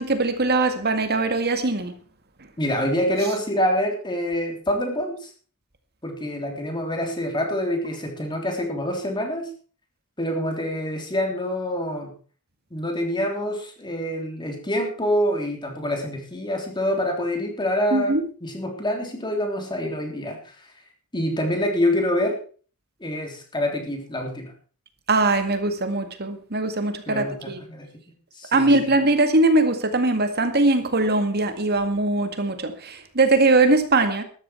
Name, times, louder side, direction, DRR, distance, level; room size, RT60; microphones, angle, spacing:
voice 1, 0.0-1.9 17.9-18.2 25.1-27.6 28.5-34.2, right 2 dB, 50° right, 8 dB, 2.0 m, -21 dB
voice 2, 2.6-5.3 6.0-9.5 10.2-12.1 12.7-20.4 21.1-22.4 23.0-24.5 27.1-27.9 28.4-29.0, left 1 dB, 20° left, 3 dB, 3.5 m, -26 dB
13.5 x 13.0 x 4.7 m, 0.40 s
head